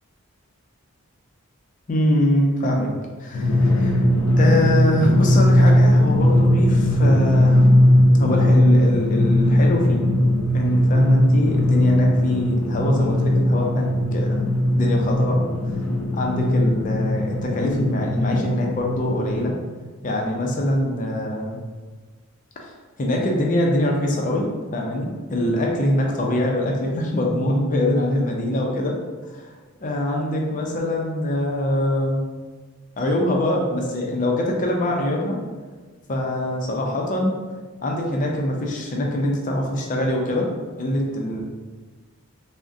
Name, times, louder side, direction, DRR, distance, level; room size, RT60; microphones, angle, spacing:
voice 1, 1.9-2.9 3.2-4.1 4.4-7.6 8.2-10.0 10.5-14.4 14.7-15.4 16.1-19.5 20.0-21.6 22.6-22.7 23.0-24.5 24.7-29.0 29.3-29.5 29.8-32.2 33.0-35.4 36.1-37.3 37.8-40.5 40.8-41.4, left 1 dB, 35° left, 0 dB, 0.4 m, -23 dB
Drum, 3.3-19.5, left 1 dB, 85° left, 0.5 m, -18 dB
3.6 x 2.1 x 2.5 m, 1.4 s
head